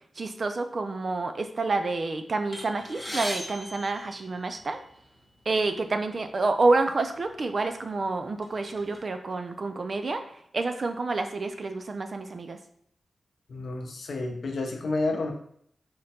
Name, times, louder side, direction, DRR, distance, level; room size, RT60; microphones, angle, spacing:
voice 1, 0.2-4.8 5.5-10.2 10.5-12.6, right 3 dB, 40° right, 7 dB, 0.3 m, -28 dB
sound 1, 2.5-4.9 5.7-5.8 6.1-6.3 7.2-7.3 7.8-9.0, left 1 dB, 10° left, 0.8 m, -38 dB
voice 2, 13.5-15.3, left 2 dB, 65° left, 3 dB, 0.7 m, -30 dB
5.0 x 2.2 x 4.2 m, 0.67 s
wide cardioid pair, 155°, 0 cm